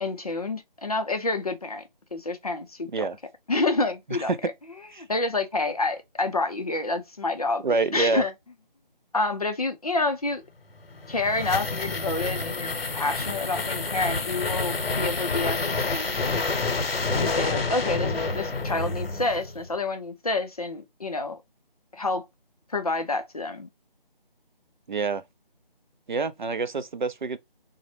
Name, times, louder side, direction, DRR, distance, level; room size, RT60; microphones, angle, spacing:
voice 1, 0.0-1.8 2.1-3.1 3.5-4.3 5.0-7.6 7.9-8.3 9.1-10.4 11.1-16.2 17.2-21.4 21.9-22.2 22.7-23.7, left 3 dB, 40° left, 0.5 m, -28 dB
voice 2, 7.6-8.2 24.9-25.2 26.1-27.4, right 4 dB, 55° right, 0.4 m, -26 dB
sound 1, 10.8-19.6, left 3 dB, 90° left, 0.8 m, -28 dB
3.9 x 2.0 x 2.9 m
figure-of-eight pair, 170°, 29 cm